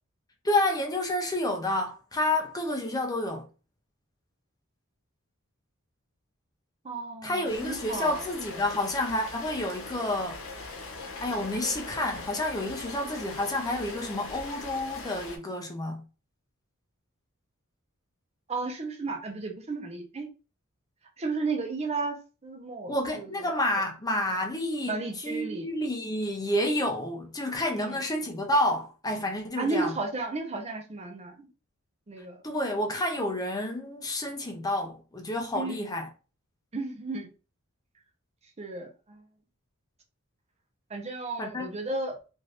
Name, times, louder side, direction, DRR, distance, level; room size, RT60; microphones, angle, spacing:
voice 1, 0.4-3.5 7.2-10.4 11.2-16.0 22.9-29.9 32.4-36.1 41.4-41.7, left 1 dB, 20° left, 0.5 m, -29 dB
voice 2, 6.8-8.3 13.0-13.3 18.5-20.3 21.2-23.5 24.9-25.7 27.7-28.0 29.6-31.5 32.1-32.4 35.6-35.9 36.7-37.3 38.6-39.2 40.9-42.2, right 3 dB, 30° right, 0.6 m, -34 dB
Rain, 7.4-15.4, left 3 dB, 70° left, 0.9 m, -41 dB
2.6 x 2.5 x 3.2 m
head